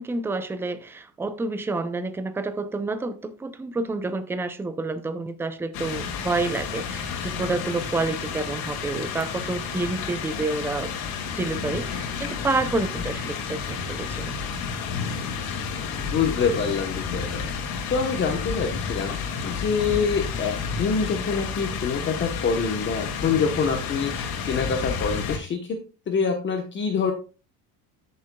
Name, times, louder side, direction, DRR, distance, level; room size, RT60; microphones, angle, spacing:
voice 1, 0.0-10.9 11.2-14.3, right 3 dB, 5° right, 0.4 m, -29 dB
sound 1, 5.7-25.4, left 6 dB, 55° left, 2.3 m, -31 dB
voice 2, 16.0-17.4 17.9-19.2 19.4-25.8 26.1-27.1, left 5 dB, 30° left, 1.0 m, -26 dB
13.5 x 6.7 x 2.3 m
cardioid pair, 160°, 41 cm